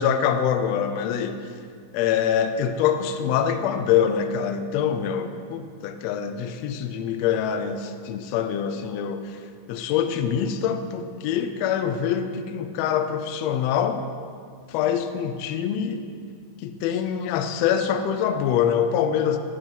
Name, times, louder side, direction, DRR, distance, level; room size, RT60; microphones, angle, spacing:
voice 1, 0.0-1.5 1.9-9.4 9.7-14.0 14.7-16.0 16.6-19.4, left 8 dB, 90° left, 8 dB, 1.4 m, -24 dB
8.0 x 5.5 x 5.6 m, 2.2 s
omnidirectional pair, 3.5 m